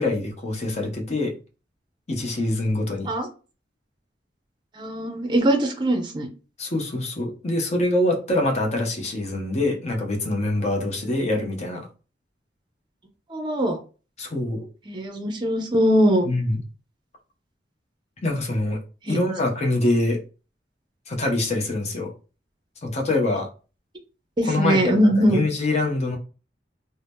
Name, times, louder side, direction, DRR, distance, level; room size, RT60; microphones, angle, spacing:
voice 1, 0.0-1.4 2.1-3.1 6.6-11.9 14.2-14.7 16.2-16.6 18.2-18.8 19.1-20.2 21.1-22.1 22.8-23.5 24.5-26.2, left 2 dB, 40° left, 0.7 m, -24 dB
voice 2, 4.8-6.3 13.3-13.8 14.9-16.3 19.0-19.2 24.4-25.4, equal, 25° right, 0.5 m, -21 dB
2.7 x 2.0 x 3.4 m
head